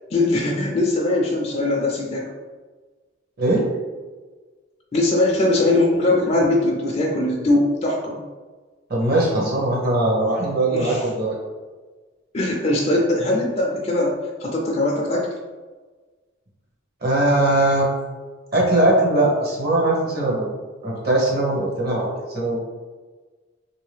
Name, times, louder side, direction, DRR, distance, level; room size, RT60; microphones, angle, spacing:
voice 1, 0.1-2.3 4.9-8.2 10.7-11.1 12.3-15.3, left 2 dB, 35° left, -2 dB, 0.4 m, -21 dB
voice 2, 8.9-11.3 17.0-17.9 18.5-20.5 20.8-22.6, right 1 dB, 50° right, -3 dB, 0.9 m, -20 dB
3.0 x 2.7 x 3.3 m, 1.3 s
head